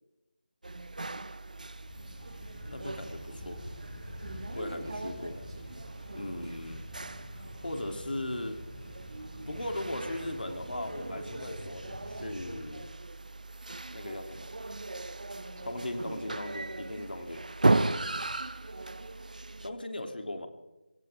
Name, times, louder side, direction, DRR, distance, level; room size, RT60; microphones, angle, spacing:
sound 1, 0.6-19.7, right 2 dB, 55° right, 1.1 m, -36 dB
sound 2, 1.3-12.4, left 2 dB, 45° left, 2.7 m, -56 dB
sound 3, 1.9-12.6, left 1 dB, 20° left, 5.9 m, -47 dB
voice 1, 2.6-3.6 4.5-5.4 6.1-6.8 7.3-8.6 9.5-12.9 13.9-14.5 15.6-17.4 19.6-20.5, left 1 dB, 75° left, 5 dB, 3.1 m, -38 dB
voice 2, 4.2-5.7 6.1-6.6 15.3-15.7 17.8-18.3, right 2 dB, 30° right, -1 dB, 4.8 m, -44 dB
27.5 x 13.5 x 3.6 m, 1.1 s
figure-of-eight pair, 175°, 5 cm